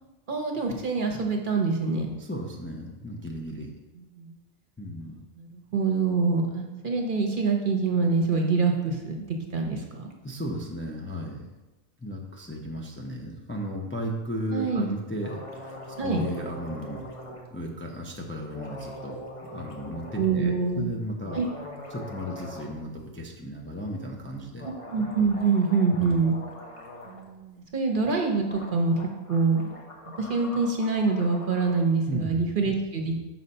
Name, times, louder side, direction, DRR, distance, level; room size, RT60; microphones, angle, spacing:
voice 1, 0.3-2.1 4.2-4.3 5.4-9.2 9.5-10.1 14.5-14.9 16.0-16.2 20.2-20.8 21.3-21.4 24.6-26.4 27.1-28.9 29.3-29.8 30.2-33.2, right 4 dB, 50° right, 2 dB, 0.9 m, -25 dB
voice 2, 2.2-3.7 4.8-5.2 10.2-11.4 12.0-17.0 17.5-21.4 21.9-24.7 25.9-26.3 32.1-32.6, equal, 15° left, -1 dB, 0.5 m, -35 dB
sound 1, 15.2-17.4 18.5-20.3 21.1-22.8 23.0-23.1 24.6-27.2 28.2-28.3 28.4-31.8, left 1 dB, 30° left, 0.9 m, -42 dB
6.2 x 4.1 x 5.4 m, 1.1 s
omnidirectional pair, 1.2 m